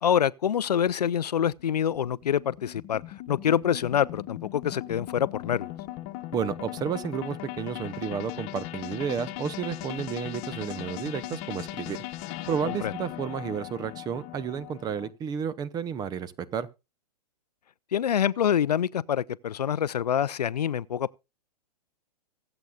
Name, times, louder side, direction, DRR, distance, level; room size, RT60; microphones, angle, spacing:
voice 1, 0.0-3.0 3.3-5.7 12.7-12.9 17.9-21.2, left 9 dB, 75° left, 0.5 m, -26 dB
sound 1, 0.9-15.1, left 16 dB, 40° left, 1.1 m, -39 dB
voice 2, 6.3-12.0 12.5-16.7, right 7 dB, 20° right, 0.7 m, -32 dB
23.5 x 7.9 x 2.3 m
figure-of-eight pair, 110°, 21 cm